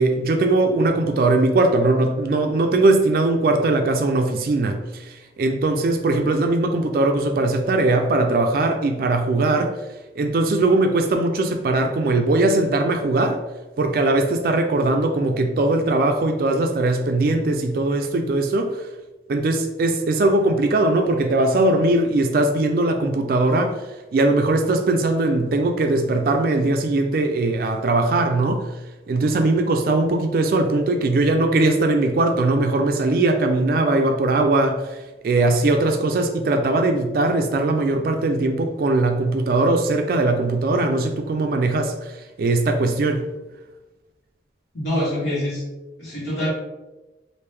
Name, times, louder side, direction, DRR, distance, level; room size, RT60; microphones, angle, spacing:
voice 1, 0.0-9.8 10.2-13.4 13.8-18.9 19.3-28.8 29.1-43.2, right 2 dB, 55° right, 5 dB, 0.3 m, -20 dB
voice 2, 44.7-45.6 46.0-46.5, left 1 dB, 85° left, -7 dB, 1.4 m, -25 dB
3.2 x 2.5 x 3.3 m, 1.1 s
head